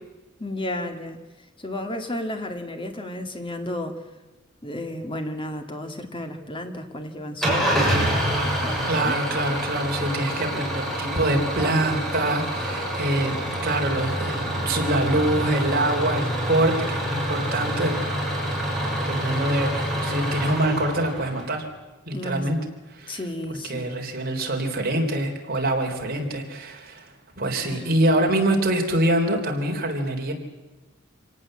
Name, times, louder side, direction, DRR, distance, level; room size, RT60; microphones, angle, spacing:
voice 1, 0.4-1.2 1.6-4.0 4.6-9.1 22.1-22.4 23.1-23.9 27.6-28.0, left 1 dB, 25° left, 6 dB, 2.1 m, -33 dB
Engine starting / Idling, 7.4-21.6, equal, ahead, 7.0 m, -27 dB
voice 2, 8.9-17.9 19.1-21.6 22.1-22.6 22.9-23.2 23.7-30.3, right 1 dB, 45° right, 2 dB, 3.7 m, -25 dB
26.0 x 18.5 x 7.7 m, 1.1 s
head